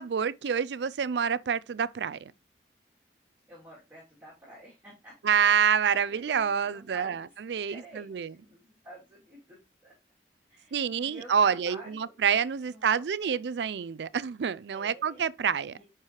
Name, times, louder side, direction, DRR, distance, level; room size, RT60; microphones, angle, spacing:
voice 1, 0.0-2.3 5.2-8.3 10.7-15.8, right 7 dB, 75° right, 0.4 m, -27 dB
voice 2, 3.5-5.2 6.1-7.4 7.7-9.9 10.5-12.1 12.6-13.4 14.7-15.3 15.7-15.8, right 1 dB, 10° right, 2.8 m, -50 dB
10.5 x 4.6 x 3.1 m
head